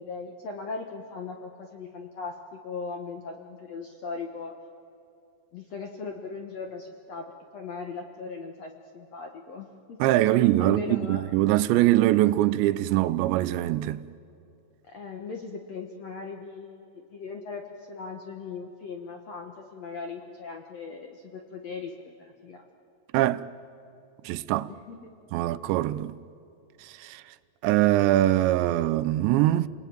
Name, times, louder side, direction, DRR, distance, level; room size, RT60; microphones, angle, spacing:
voice 1, 0.0-4.5 5.5-10.0 10.2-11.2 14.8-22.6 24.7-25.1, left 4 dB, 65° left, 1.7 m, -39 dB
voice 2, 10.0-14.0 23.1-23.5 24.2-24.7 25.3-26.2 26.8-27.2 27.6-29.7, right 15 dB, 85° right, 3.0 m, -23 dB
29.0 x 20.5 x 9.2 m
omnidirectional pair, 5.0 m